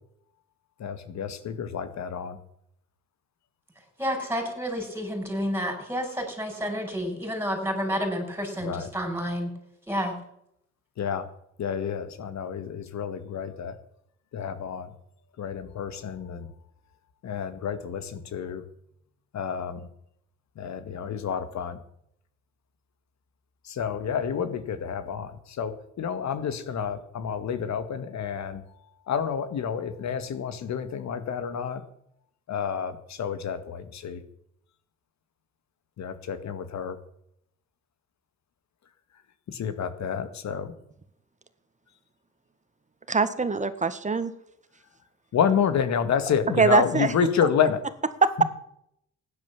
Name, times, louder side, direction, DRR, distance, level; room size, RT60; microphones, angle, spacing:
voice 1, 0.8-2.4 8.6-8.9 11.0-11.3 11.6-13.8 14.3-14.9 15.4-16.5 17.2-18.6 19.3-19.9 20.6-21.8 23.6-28.6 29.1-31.8 32.5-34.2 36.0-37.0 39.5-40.7 45.3-47.8 48.4-48.5, left 7 dB, 65° left, 11 dB, 2.0 m, -29 dB
voice 2, 4.0-9.5 9.9-10.2, equal, 10° right, 4 dB, 6.2 m, -30 dB
voice 3, 43.1-44.3 46.6-47.1 47.4-47.5 48.2-48.3, right 4 dB, 25° right, 11 dB, 1.7 m, -22 dB
16.0 x 10.5 x 7.3 m, 0.73 s
cardioid pair, 90°, 30 cm